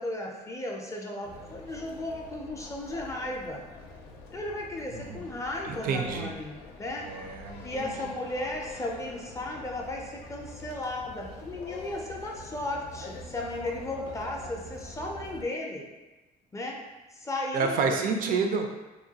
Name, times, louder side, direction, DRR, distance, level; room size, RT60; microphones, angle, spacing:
voice 1, 0.0-3.6 4.3-7.1 7.6-15.9 16.5-16.8 17.1-18.0, left 1 dB, 20° left, 0 dB, 0.4 m, -35 dB
sound 1, 1.2-15.5, left 2 dB, 85° left, 0.5 m, -45 dB
voice 2, 4.9-5.2 5.7-6.3 7.0-8.1 17.5-18.7, right 4 dB, 55° right, 4 dB, 0.4 m, -29 dB
3.0 x 2.2 x 2.7 m, 1.1 s
cardioid pair, 110°, 17 cm